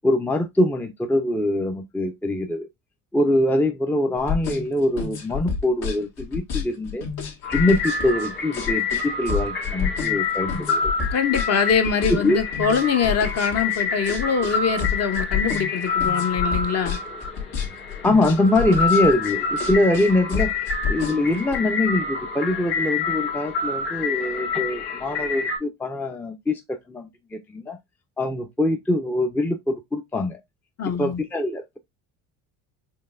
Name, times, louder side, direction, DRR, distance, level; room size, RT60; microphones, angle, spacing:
voice 1, 0.0-2.7 3.1-7.0 7.5-10.9 12.2-12.4 18.0-20.5 20.9-27.8 28.2-30.4 30.8-31.8, left 1 dB, 5° left, 0.5 m, -23 dB
sound 1, 4.2-21.6, left 7 dB, 60° left, 1.4 m, -29 dB
sound 2, 7.4-25.6, left 4 dB, 85° left, 1.8 m, -27 dB
voice 2, 11.1-17.0 30.8-31.2, left 6 dB, 35° left, 0.8 m, -23 dB
4.5 x 3.1 x 2.4 m
hypercardioid pair, 70°, 42 cm